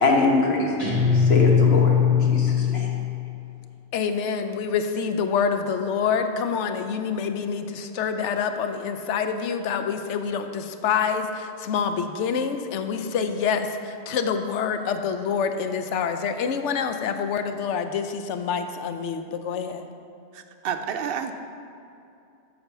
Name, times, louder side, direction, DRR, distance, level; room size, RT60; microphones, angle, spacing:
voice 1, 0.0-0.7 1.3-2.9, left 3 dB, 60° left, 0 dB, 1.3 m, -23 dB
Guitar, 0.8-3.4, left 7 dB, 20° left, 1.5 m, -20 dB
voice 2, 3.9-19.9, left 6 dB, 85° left, 8 dB, 0.9 m, -26 dB
voice 3, 20.3-21.3, right 7 dB, 65° right, 7 dB, 0.7 m, -30 dB
6.8 x 4.4 x 6.6 m, 2.6 s
omnidirectional pair, 1.2 m